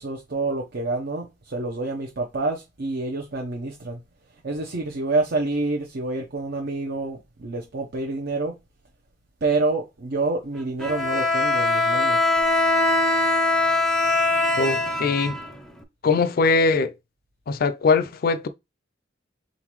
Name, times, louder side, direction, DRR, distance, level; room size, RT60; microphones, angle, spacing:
voice 1, 0.0-4.0 4.4-8.6 9.4-12.2, right 3 dB, 60° right, 0.7 m, -27 dB
Bowed string instrument, 10.8-15.8, left 2 dB, 5° left, 0.6 m, -22 dB
voice 2, 14.6-15.4 16.0-16.9 17.5-18.5, left 4 dB, 50° left, 0.4 m, -21 dB
4.0 x 3.8 x 3.0 m
head